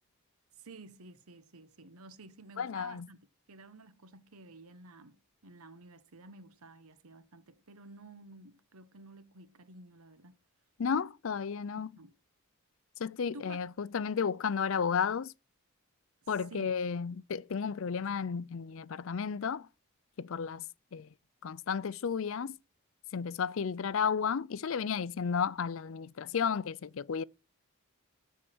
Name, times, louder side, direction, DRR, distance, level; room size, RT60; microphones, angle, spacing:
voice 1, 0.6-10.4 11.9-12.1 13.3-13.6 16.2-16.7, right 2 dB, 80° right, 1.1 m, -52 dB
voice 2, 2.6-3.1 10.8-11.9 13.0-15.3 16.3-19.7 20.2-20.6 20.9-21.1 21.4-22.5 23.1-27.2, left 6 dB, 65° left, 0.4 m, -33 dB
14.0 x 4.7 x 6.2 m
head